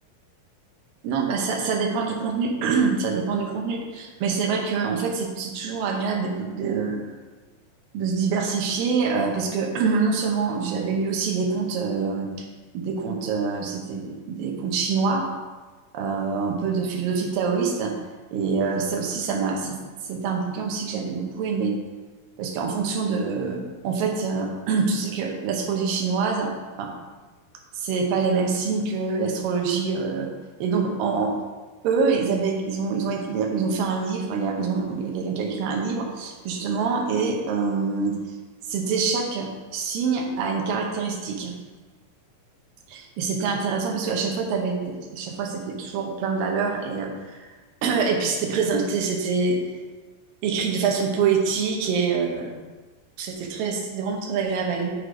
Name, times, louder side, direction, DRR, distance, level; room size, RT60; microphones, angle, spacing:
voice 1, 1.0-7.0 7.9-12.3 12.7-15.3 15.9-17.9 18.3-19.8 20.1-21.8 22.4-26.5 26.8-26.9 27.8-30.3 30.6-31.4 31.8-38.2 38.7-41.5 42.9-47.5 47.8-49.6 50.4-52.5 53.2-54.9, right 5 dB, 80° right, 1 dB, 2.6 m, -25 dB
8.9 x 3.2 x 5.0 m, 1.3 s
omnidirectional pair, 4.1 m